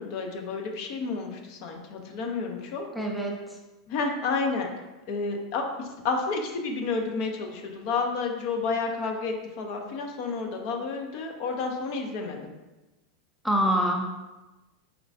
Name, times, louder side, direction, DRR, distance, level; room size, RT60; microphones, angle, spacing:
voice 1, 0.0-2.9 3.9-4.7 5.1-12.5, left 4 dB, 55° left, 3 dB, 0.7 m, -30 dB
voice 2, 2.9-3.4 13.4-14.1, equal, ahead, 0 dB, 0.5 m, -25 dB
4.4 x 3.1 x 2.6 m, 1.1 s
supercardioid pair, 130°, 3 cm